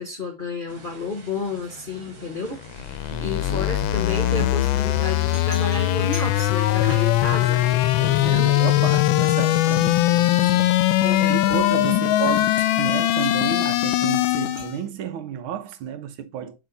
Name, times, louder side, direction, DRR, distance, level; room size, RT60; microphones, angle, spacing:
voice 1, 0.0-7.6 8.0-8.5 9.8-9.9 11.0-11.4 11.8-12.3, left 4 dB, 35° left, 0.8 m, -31 dB
sound 1, 0.7-8.3, right 2 dB, 65° right, 2.7 m, -45 dB
sound 2, 2.6-14.8, left 15 dB, 80° left, 1.3 m, -21 dB
voice 2, 3.1-3.7 4.3-4.5 7.3-10.8 11.3-16.6, right 8 dB, 85° right, 1.7 m, -32 dB
sound 3, 5.2-7.2 7.4-9.0 9.4-12.2 12.6-12.9 13.2-13.4 14.6-14.7, right 2 dB, 50° right, 2.7 m, -42 dB
7.6 x 3.7 x 3.8 m
omnidirectional pair, 2.2 m